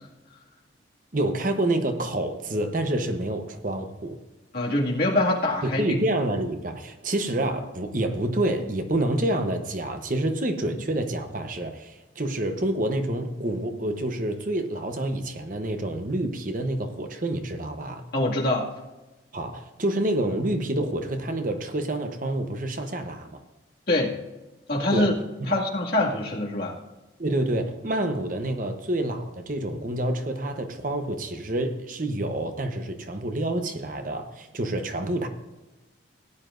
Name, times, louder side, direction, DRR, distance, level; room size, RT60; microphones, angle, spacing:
voice 1, 1.1-4.2 5.6-18.0 19.3-23.4 24.9-25.6 27.2-35.3, right 1 dB, 45° right, 6 dB, 0.9 m, -28 dB
voice 2, 4.5-6.0 18.1-18.7 23.9-24.1 24.7-25.1 25.5-26.7, left 2 dB, 50° left, -3 dB, 2.2 m, -24 dB
17.0 x 9.9 x 2.6 m, 1.1 s
head